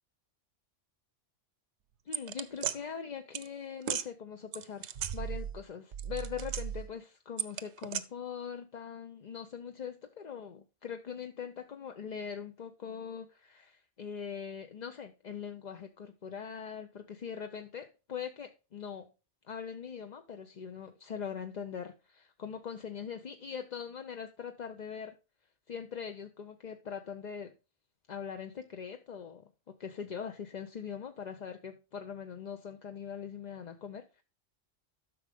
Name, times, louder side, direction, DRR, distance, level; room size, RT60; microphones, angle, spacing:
voice 1, 2.1-19.1 19.5-25.2 25.7-27.5 28.1-34.2, left 7 dB, 45° left, 0.7 m, -42 dB
sound 1, 2.1-2.8 3.3-3.5 3.8-4.1 4.5-5.6 5.9-6.9 7.4-8.0, right 8 dB, 70° right, 1.0 m, -35 dB
12.0 x 6.4 x 3.5 m
omnidirectional pair, 1.2 m